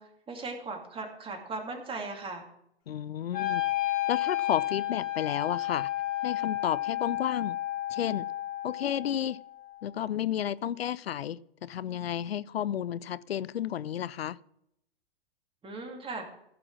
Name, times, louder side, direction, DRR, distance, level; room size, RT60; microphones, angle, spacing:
voice 1, 0.0-2.4 15.6-16.3, right 3 dB, 20° right, 2.4 m, -38 dB
voice 2, 2.9-3.6 4.1-5.9 6.2-7.6 7.9-8.3 8.6-9.4 9.8-14.4, left 10 dB, 80° left, 0.5 m, -32 dB
Wind instrument woodwind instrument, 3.3-9.4, left 14 dB, 30° left, 2.7 m, -31 dB
15.0 x 6.1 x 6.0 m
figure-of-eight pair, 100°, 30 cm